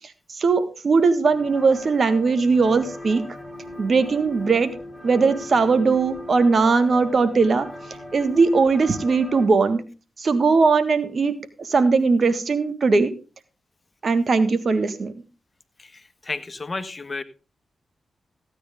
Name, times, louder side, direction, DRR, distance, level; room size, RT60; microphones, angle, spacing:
voice 1, 0.4-3.2 3.8-4.7 5.0-7.7 8.1-9.8 10.2-13.1 14.0-15.1, right 4 dB, 55° right, 12 dB, 1.7 m, -19 dB
sound 1, 1.3-9.5, left 1 dB, 10° right, 7.2 m, -39 dB
voice 2, 16.3-17.2, left 3 dB, 40° left, 12 dB, 1.5 m, -31 dB
15.5 x 9.3 x 3.6 m, 0.33 s
supercardioid pair, 40°, 0 cm